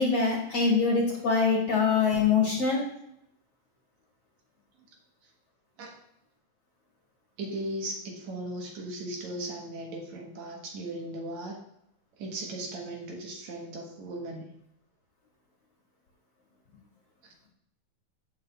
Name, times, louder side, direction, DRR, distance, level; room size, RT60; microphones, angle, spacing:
voice 1, 0.0-2.8, left 5 dB, 45° left, -2 dB, 2.2 m, -24 dB
voice 2, 7.4-11.6 12.2-14.5, right 1 dB, 65° right, 0 dB, 2.5 m, -37 dB
16.0 x 5.4 x 2.4 m, 0.76 s
omnidirectional pair, 3.7 m